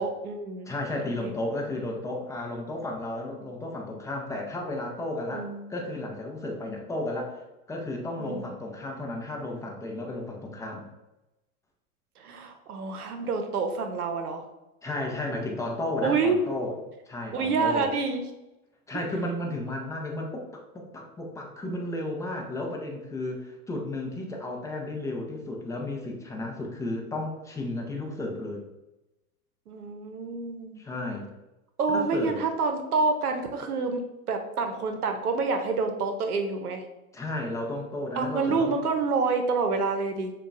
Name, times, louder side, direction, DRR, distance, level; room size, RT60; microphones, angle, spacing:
voice 1, 0.0-0.7 1.0-1.3 5.3-5.7 8.2-8.5 12.2-14.5 16.0-16.4 17.3-18.2 29.7-30.8 31.8-36.8 38.1-40.3, right 4 dB, 85° right, 6 dB, 0.7 m, -28 dB
voice 2, 0.7-7.4 7.7-10.9 14.8-16.7 17.1-17.9 18.9-20.5 20.7-28.6 30.8-31.3 31.9-32.4 37.1-38.7, left 2 dB, 10° left, 0 dB, 0.4 m, -33 dB
6.3 x 2.3 x 2.4 m, 0.99 s
hypercardioid pair, 105°, 44 cm